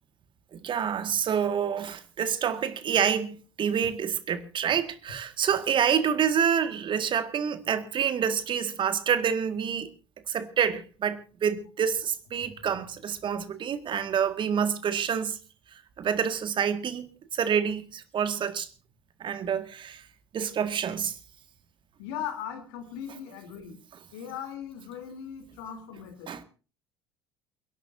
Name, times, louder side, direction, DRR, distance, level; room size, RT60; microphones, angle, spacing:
voice 1, 0.6-9.9 10.3-15.4 16.0-18.7 19.2-20.0 20.3-21.1 26.3-26.4, right 8 dB, 35° right, 1.8 m, -27 dB
voice 2, 22.0-23.8 24.1-26.3, left 9 dB, 60° left, 3.3 m, -38 dB
29.0 x 12.0 x 2.7 m
figure-of-eight pair, 60°, 13 cm